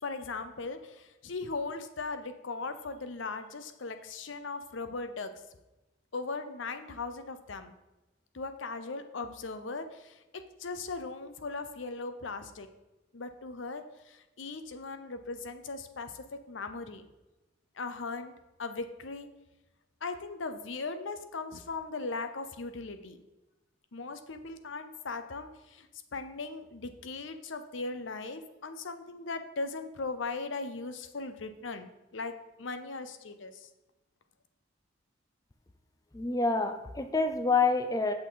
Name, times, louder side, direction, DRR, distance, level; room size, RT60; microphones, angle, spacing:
voice 1, 0.0-5.3 6.1-7.7 8.3-10.2 10.6-12.7 13.1-17.1 17.8-18.3 18.6-19.3 20.0-23.2 23.9-25.9 26.1-32.3 32.6-33.7, left 3 dB, 80° left, 9 dB, 0.7 m, -38 dB
voice 2, 36.1-38.1, left 4 dB, 20° left, 6 dB, 0.4 m, -27 dB
8.2 x 6.6 x 4.0 m, 1.0 s
head